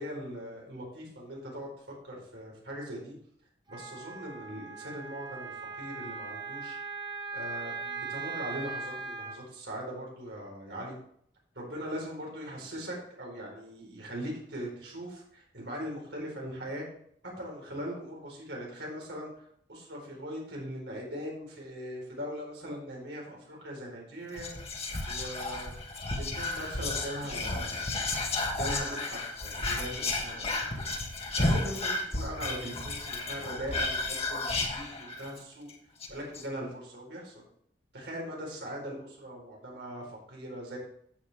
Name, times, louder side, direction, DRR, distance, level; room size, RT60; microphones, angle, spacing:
voice 1, 0.0-1.7 2.0-3.1 3.7-6.8 7.3-11.0 11.5-16.8 17.4-24.5 25.1-25.7 26.1-27.8 28.5-30.8 31.4-35.7 36.1-37.4 37.9-40.8, equal, 85° right, -2 dB, 4.4 m, -40 dB
Wind instrument woodwind instrument, 3.7-9.4, right 4 dB, 25° right, 1.2 m, -39 dB
Whispering, 24.3-35.4 35.7-35.8 36.0-36.4, left 2 dB, 35° left, 1.6 m, -33 dB
10.5 x 7.8 x 3.5 m, 0.67 s
head